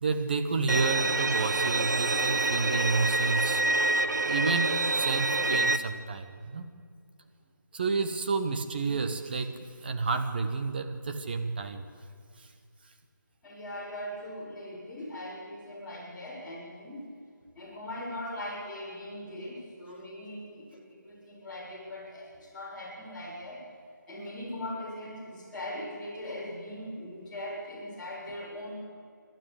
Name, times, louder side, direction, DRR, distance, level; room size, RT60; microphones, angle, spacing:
voice 1, 0.0-3.9 4.2-6.7 7.7-11.8, right 4 dB, 30° right, 6 dB, 1.3 m, -30 dB
Bowed string instrument, 0.7-5.8, right 2 dB, 65° right, 1.1 m, -27 dB
voice 2, 13.4-17.1 17.5-23.6 24.1-28.8, left 1 dB, 5° left, -10 dB, 4.6 m, -40 dB
27.5 x 12.5 x 8.4 m, 2.2 s
figure-of-eight pair, 165°, 10 cm